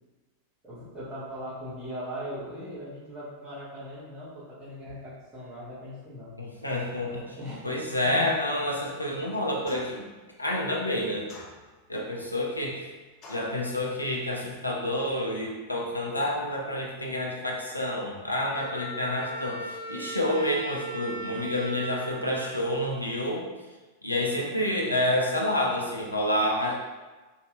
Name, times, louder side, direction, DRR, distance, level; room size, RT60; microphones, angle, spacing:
voice 1, 0.6-6.3 6.9-8.4 15.3-15.5, equal, 5° right, -17 dB, 1.3 m, -39 dB
voice 2, 6.4-7.4 7.6-10.1 10.4-11.3 11.9-12.9 13.3-23.4 24.0-26.7, left 1 dB, 85° left, -2 dB, 0.5 m, -29 dB
sound 1, 9.7-10.1 11.3-12.0 13.2-13.6, left 2 dB, 35° left, 0.6 m, -46 dB
Wind instrument woodwind instrument, 18.5-23.3, right 2 dB, 70° right, 0.4 m, -38 dB
3.0 x 2.7 x 2.4 m, 1.2 s
figure-of-eight pair, 90°, 0 cm